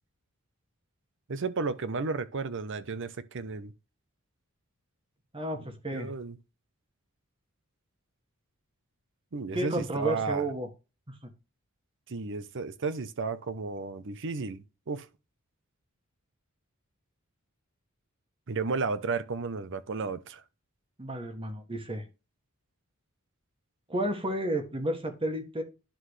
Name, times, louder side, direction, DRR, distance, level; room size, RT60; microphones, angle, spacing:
voice 1, 1.3-3.7 5.9-6.4 9.3-10.5 12.1-15.1 18.5-20.4, right 4 dB, 60° right, 0.7 m, -33 dB
voice 2, 5.3-6.1 9.5-10.7 11.1-11.2 21.0-22.0 23.9-25.6, right 1 dB, 25° right, 1.4 m, -32 dB
11.5 x 3.9 x 3.2 m
head